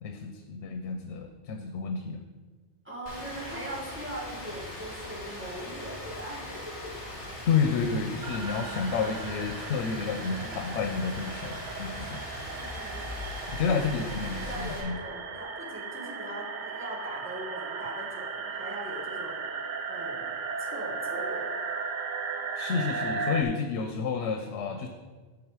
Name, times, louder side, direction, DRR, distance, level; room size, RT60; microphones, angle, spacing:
voice 1, 0.0-2.2 7.4-12.2 13.5-15.0 22.6-24.9, left 5 dB, 85° left, 5 dB, 0.9 m, -30 dB
voice 2, 2.8-6.9 12.6-13.3 13.7-13.8 14.1-19.4 19.9-20.3 20.6-21.5, right 1 dB, 10° right, -4 dB, 1.6 m, -40 dB
Rain, 3.1-14.8, left 1 dB, 55° left, 2.5 m, -41 dB
sound 1, 8.2-23.4, right 5 dB, 55° right, 0.7 m, -36 dB
sound 2, 11.9-15.1, left 3 dB, 20° left, 1.1 m, -43 dB
8.6 x 5.4 x 4.7 m, 1.4 s
omnidirectional pair, 1.1 m